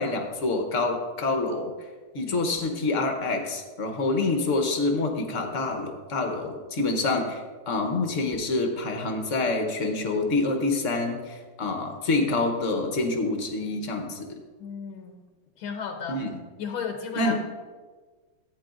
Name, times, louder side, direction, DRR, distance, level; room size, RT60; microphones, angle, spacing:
voice 1, 0.0-1.9 2.1-14.4 16.1-16.4 17.1-17.4, left 3 dB, 50° left, 4 dB, 1.0 m, -27 dB
voice 2, 14.6-15.2 15.6-16.2 16.6-17.4, left 6 dB, 85° left, 4 dB, 1.6 m, -34 dB
13.5 x 9.2 x 2.5 m, 1.4 s
omnidirectional pair, 2.3 m